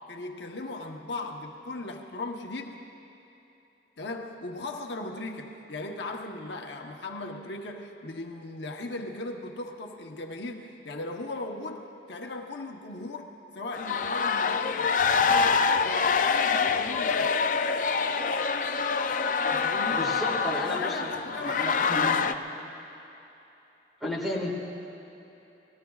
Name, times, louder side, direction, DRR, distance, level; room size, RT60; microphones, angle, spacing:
voice 1, 0.0-2.8 4.0-15.0 15.2-17.4 19.5-20.4 20.7-22.2, left 2 dB, 70° left, 2 dB, 0.9 m, -38 dB
sound 1, 13.7-22.3, left 5 dB, 45° left, 0.4 m, -26 dB
voice 2, 19.9-21.1 21.4-22.2 24.0-24.5, left 1 dB, ahead, -4 dB, 1.7 m, -32 dB
29.5 x 19.0 x 2.4 m, 3.0 s
head